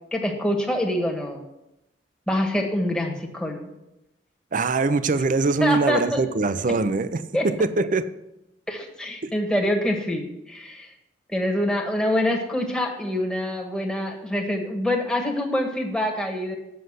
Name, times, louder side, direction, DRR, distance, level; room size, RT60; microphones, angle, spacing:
voice 1, 0.1-1.4 2.3-3.7 5.6-6.2 7.3-7.5 8.7-10.9 11.3-16.6, left 1 dB, 5° left, 1 dB, 1.4 m, -25 dB
voice 2, 4.5-8.1 9.2-9.3, right 3 dB, 50° right, 13 dB, 0.6 m, -23 dB
7.8 x 6.6 x 7.9 m, 0.90 s
head